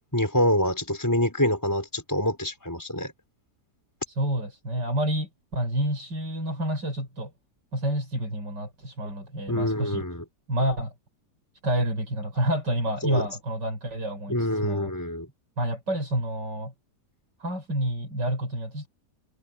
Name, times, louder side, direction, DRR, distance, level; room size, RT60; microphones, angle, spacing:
voice 1, 0.1-3.1 9.5-10.2 13.0-13.3 14.3-15.3, left 1 dB, 10° left, 5.4 m, -26 dB
voice 2, 4.2-7.3 7.7-10.0 10.5-10.9 11.6-14.9 15.6-16.7 17.4-18.9, right 1 dB, 85° right, 8.6 m, -28 dB
omnidirectional pair, 1.8 m